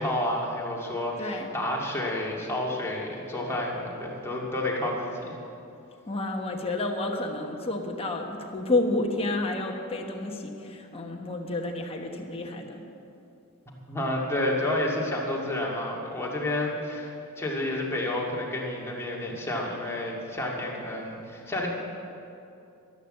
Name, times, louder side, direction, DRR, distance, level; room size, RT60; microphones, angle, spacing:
voice 1, 0.0-5.4 13.9-21.7, left 1 dB, 10° left, -3 dB, 2.1 m, -30 dB
voice 2, 6.1-12.8, left 2 dB, 25° left, 1 dB, 1.2 m, -30 dB
12.0 x 11.5 x 7.6 m, 2.7 s
head